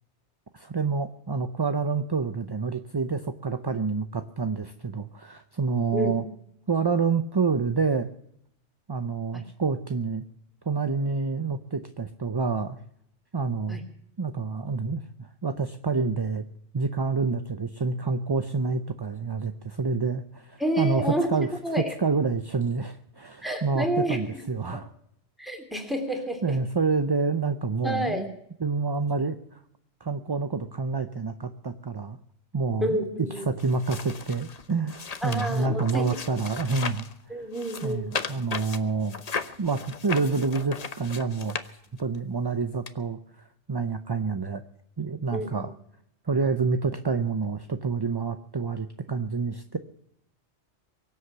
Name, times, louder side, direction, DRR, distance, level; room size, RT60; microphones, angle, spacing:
voice 1, 0.5-6.2 6.7-8.1 8.9-10.2 10.7-12.8 13.3-13.8 14.2-16.4 16.7-24.9 26.4-28.3 28.6-29.6 30.0-32.2 32.5-37.5 37.8-39.2 39.6-41.6 42.0-44.6 45.0-45.7 46.3-49.8, right 4 dB, 30° right, 9 dB, 0.5 m, -28 dB
voice 2, 20.6-21.3 21.6-21.8 23.4-24.2 25.4-26.5 27.8-28.3 32.8-33.4 35.2-36.1 37.3-38.1 45.3-45.6, equal, ahead, 4 dB, 3.1 m, -29 dB
sound 1, 33.6-37.1 37.5-42.2 42.9-43.0, left 5 dB, 35° left, 0.9 m, -36 dB
23.5 x 8.2 x 6.8 m, 0.73 s
omnidirectional pair, 1.2 m